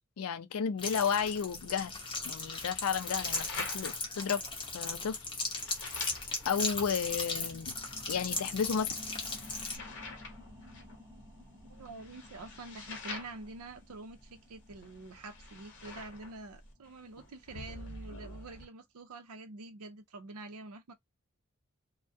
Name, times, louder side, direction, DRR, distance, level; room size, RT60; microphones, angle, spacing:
voice 1, 0.2-1.9 2.2-4.4 4.7-5.2 6.4-7.7 8.1-8.9, left 6 dB, 75° left, 0.4 m, -32 dB
sound 1, 0.8-9.8, left 3 dB, 20° left, 0.6 m, -37 dB
sound 2, 1.3-18.7, left 3 dB, 55° left, 0.9 m, -48 dB
sound 3, 6.9-18.0 18.4-18.5, left 1 dB, 15° right, 0.7 m, -55 dB
voice 2, 11.7-20.9, right 2 dB, 85° right, 0.5 m, -47 dB
2.3 x 2.1 x 2.5 m
head